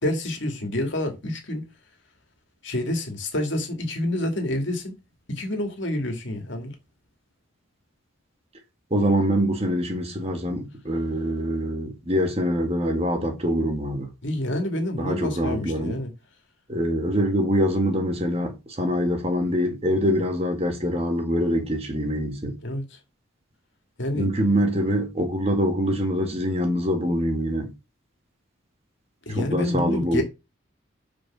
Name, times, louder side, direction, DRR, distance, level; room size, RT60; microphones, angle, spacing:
voice 1, 0.0-1.6 2.6-4.9 5.3-6.7 14.2-16.1 22.6-23.0 24.0-24.3 29.3-30.2, left 1 dB, 60° left, 2.2 m, -28 dB
voice 2, 8.9-14.1 15.0-16.0 16.7-22.5 24.1-27.7 29.3-30.2, equal, 30° right, 1.6 m, -24 dB
6.2 x 4.8 x 6.1 m
head